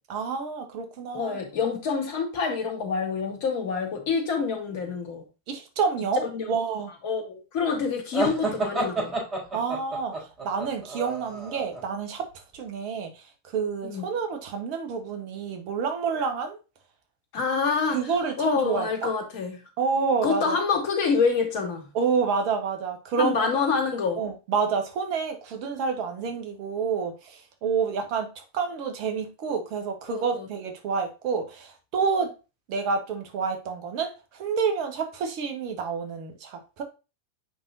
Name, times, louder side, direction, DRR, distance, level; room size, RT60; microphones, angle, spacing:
voice 1, 0.1-1.4 5.5-6.9 9.5-10.1 10.4-12.3 12.5-16.6 17.9-19.1 19.8-20.6 21.9-23.6 24.2-32.3 32.7-36.8, right 5 dB, 45° right, 1.4 m, -28 dB
voice 2, 1.1-5.2 6.3-6.5 7.0-9.2 13.8-14.1 17.3-18.1 18.4-19.6 20.2-21.9 23.2-24.2 30.1-30.5, left 5 dB, 45° left, 2.1 m, -27 dB
sound 1, 8.1-11.8, right 2 dB, 20° right, 4.0 m, -29 dB
7.8 x 5.5 x 2.7 m
figure-of-eight pair, 90°, 0 cm